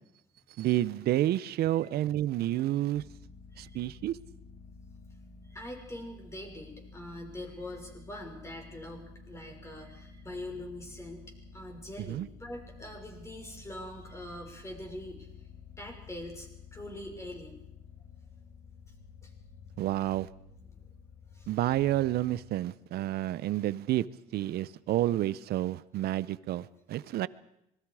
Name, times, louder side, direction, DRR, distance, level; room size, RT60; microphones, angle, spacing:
voice 1, 0.6-3.0 3.6-4.2 12.1-12.3 19.8-20.3 21.5-24.0 24.3-27.3, right 14 dB, 70° right, 18 dB, 0.8 m, -29 dB
sound 1, 2.9-22.6, left 4 dB, 65° left, 3.7 m, -51 dB
voice 2, 5.5-11.2 11.5-15.3 15.8-17.6 19.2-19.3 21.3-21.5, left 1 dB, 15° left, 2 dB, 6.2 m, -43 dB
26.0 x 22.0 x 4.9 m, 0.81 s
cardioid pair, 110°, 17 cm